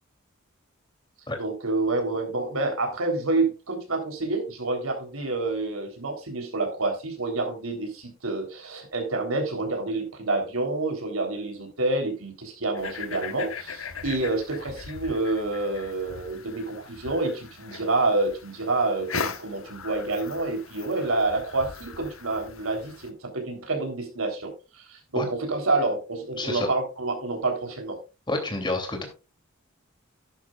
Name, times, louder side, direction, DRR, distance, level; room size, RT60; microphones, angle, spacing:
voice 1, 1.4-28.0, right 2 dB, 90° right, 3 dB, 3.5 m, -28 dB
sound 1, 12.7-23.1, left 5 dB, 70° left, 1.2 m, -39 dB
voice 2, 26.4-26.7 28.3-29.0, left 2 dB, 25° left, 4 dB, 2.9 m, -28 dB
11.5 x 11.0 x 2.4 m, 0.30 s
head